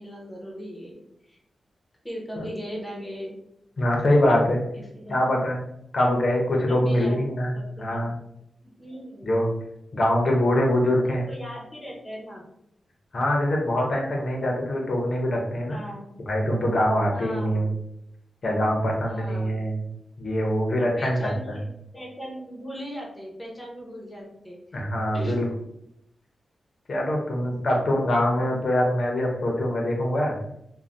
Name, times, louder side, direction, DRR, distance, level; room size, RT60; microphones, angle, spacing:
voice 1, 0.0-1.4 2.0-3.3 4.7-5.2 6.7-7.3 7.5-8.1 8.8-9.3 11.0-12.4 15.7-16.1 17.1-17.7 19.0-19.6 20.8-21.7 21.9-24.6 25.1-25.6 28.3-28.4, equal, 15° left, -2 dB, 0.8 m, -38 dB
voice 2, 3.8-4.6 5.1-5.6 5.9-8.2 9.2-9.5 9.9-11.3 13.1-15.8 16.3-17.7 18.4-19.8 20.2-21.6 24.7-25.5 26.9-30.4, left 1 dB, 50° left, 0 dB, 0.7 m, -24 dB
2.6 x 2.2 x 3.3 m, 0.78 s
wide cardioid pair, 145°, 0 cm